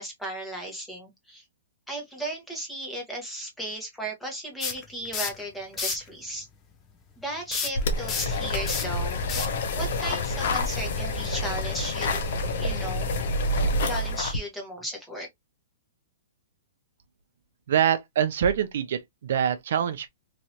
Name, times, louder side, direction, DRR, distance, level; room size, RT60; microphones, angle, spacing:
voice 1, 0.0-1.4 1.9-6.5 7.2-9.3 9.8-12.2 12.6-13.2 13.8-15.3, right 1 dB, 5° left, 1.1 m, -35 dB
sound 1, 4.6-5.4 5.7-6.1 7.5-10.6, left 6 dB, 20° left, 0.7 m, -32 dB
sound 2, 7.7-14.4, left 2 dB, 60° left, 0.8 m, -28 dB
voice 2, 17.7-20.1, right 9 dB, 65° right, 0.5 m, -25 dB
3.1 x 2.7 x 2.8 m
hypercardioid pair, 155°, 0 cm